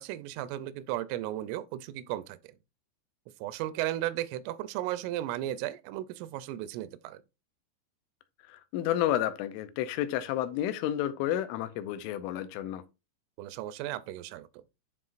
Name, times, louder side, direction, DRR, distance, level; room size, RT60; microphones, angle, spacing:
voice 1, 0.0-2.6 3.4-7.2 13.4-14.6, right 14 dB, 90° right, 3.1 m, -35 dB
voice 2, 8.5-12.8, left 12 dB, 85° left, 3.1 m, -31 dB
11.0 x 3.9 x 2.5 m
omnidirectional pair, 5.6 m